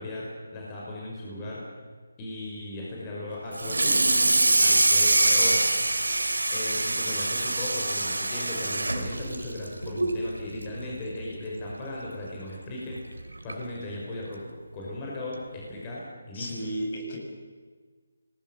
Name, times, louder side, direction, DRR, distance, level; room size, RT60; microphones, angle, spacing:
voice 1, 0.0-1.7 2.2-4.0 4.6-5.7 6.5-16.7, left 1 dB, 20° left, -4 dB, 5.9 m, -37 dB
Water tap faucet / Sink (filling or washing), 3.5-10.2 10.6-10.8 11.2-11.3 11.7-11.8 12.9-13.0 13.5-13.7, right 2 dB, 90° right, 3.3 m, -24 dB
voice 2, 16.3-17.2, equal, 45° left, 1 dB, 7.4 m, -33 dB
27.0 x 20.5 x 7.5 m, 1.5 s
figure-of-eight pair, 160°, 0 cm